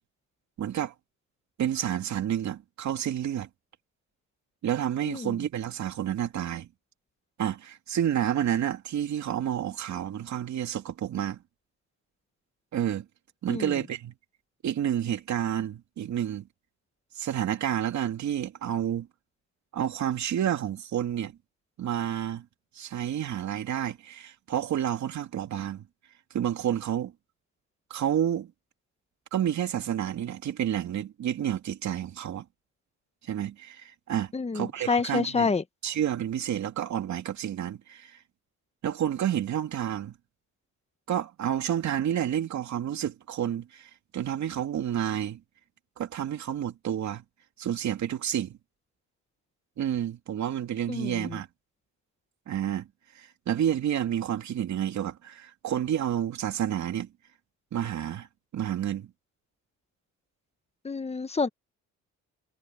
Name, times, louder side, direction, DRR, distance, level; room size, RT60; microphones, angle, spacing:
voice 1, 0.6-0.9 1.6-3.5 4.6-6.7 7.4-11.4 12.7-13.1 13.4-14.1 14.6-16.5 17.1-19.1 19.7-21.3 21.8-22.4 22.7-25.8 26.3-27.1 27.9-28.5 29.3-32.4 33.2-35.5 35.8-38.2 38.8-40.1 41.1-45.4 46.0-47.2 47.6-48.6 49.8-51.5 52.5-52.9 53.2-57.1 57.7-58.3 58.5-59.1, right 10 dB, 65° right, 2.7 m, -30 dB
voice 2, 5.0-5.4 13.5-13.7 34.3-35.6 50.9-51.4 60.8-61.5, left 4 dB, 20° left, 1.3 m, -28 dB
cardioid pair, 90°, 30 cm